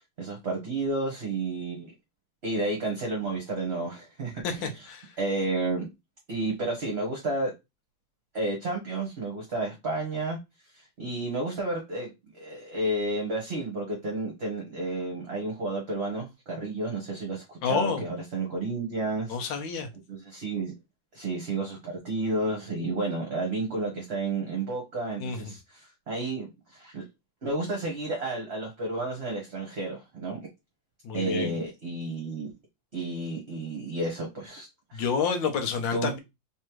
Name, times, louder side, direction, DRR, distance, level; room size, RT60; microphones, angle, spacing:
voice 1, 0.0-1.9 2.4-4.7 5.2-5.9 6.3-7.5 8.3-10.4 10.7-19.4 20.1-20.7 21.1-27.0 27.4-30.5 31.1-32.5 32.9-35.0 35.9-36.1, right 2 dB, 40° right, 1.1 m, -31 dB
voice 2, 4.4-5.1 17.6-18.0 19.3-19.9 25.2-25.5 31.0-31.6 34.9-36.2, left 5 dB, 80° left, 1.6 m, -29 dB
3.6 x 3.3 x 3.0 m
omnidirectional pair, 2.1 m